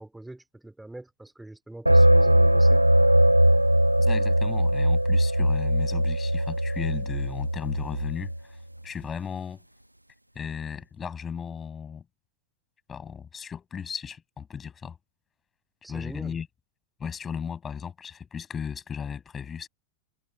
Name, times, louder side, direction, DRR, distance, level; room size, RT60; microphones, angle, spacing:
voice 1, 0.0-2.8 15.8-16.4, right 2 dB, 5° right, 3.6 m, -43 dB
sound 1, 1.9-8.4, right 1 dB, 85° right, 0.9 m, -20 dB
voice 2, 4.0-9.6 10.3-12.0 12.9-15.0 15.9-16.5 17.0-19.7, left 7 dB, 20° left, 6.3 m, -35 dB
figure-of-eight pair, 90°, 0 cm